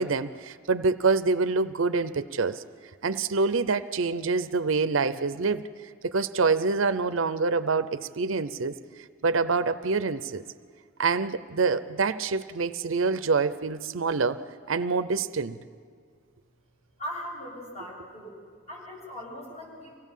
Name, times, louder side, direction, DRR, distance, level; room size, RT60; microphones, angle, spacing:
voice 1, 0.0-2.6 3.0-5.6 6.0-8.7 9.2-10.4 11.0-14.4 14.7-15.6, right 4 dB, 65° right, 13 dB, 0.6 m, -26 dB
voice 2, 17.0-18.3 18.7-20.0, equal, 35° left, -3 dB, 7.7 m, -39 dB
25.0 x 17.5 x 7.3 m, 2.1 s
head